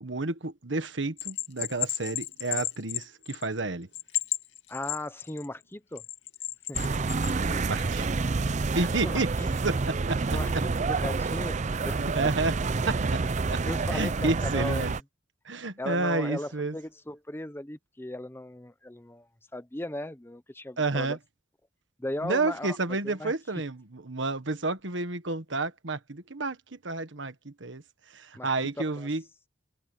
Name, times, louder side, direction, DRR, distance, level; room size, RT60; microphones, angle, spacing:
voice 1, 0.0-3.9 7.6-8.1 8.7-9.3 9.6-10.6 12.0-12.5 12.9-13.2 13.5-13.6 13.9-14.9 15.4-16.8 20.8-21.2 22.2-29.2, right 3 dB, 75° right, 1.5 m, -30 dB
Bell, 1.2-3.6 3.9-5.5 6.0-7.3, left 13 dB, 80° left, 2.6 m, -33 dB
voice 2, 4.7-6.0 6.7-6.8 7.5-7.7 8.8-9.5 10.3-11.6 11.8-12.3 13.7-14.9 15.8-19.3 19.5-21.2 22.0-22.8 23.0-23.3 28.4-29.1, left 1 dB, 10° left, 0.8 m, -37 dB
sound 1, 6.7-15.0, right 4 dB, 40° right, 0.5 m, -28 dB
head